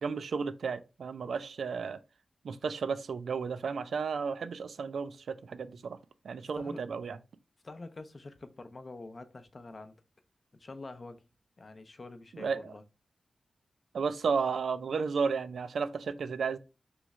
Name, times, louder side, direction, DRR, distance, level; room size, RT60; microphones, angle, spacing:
voice 1, 0.0-2.0 2.4-6.0 6.2-7.2 12.3-12.7 13.9-16.6, right 5 dB, 90° right, 0.3 m, -33 dB
voice 2, 7.6-9.9 10.5-11.2 11.6-12.8, left 3 dB, 40° left, 0.5 m, -46 dB
3.1 x 3.1 x 3.6 m
wide cardioid pair, 120°, 0 cm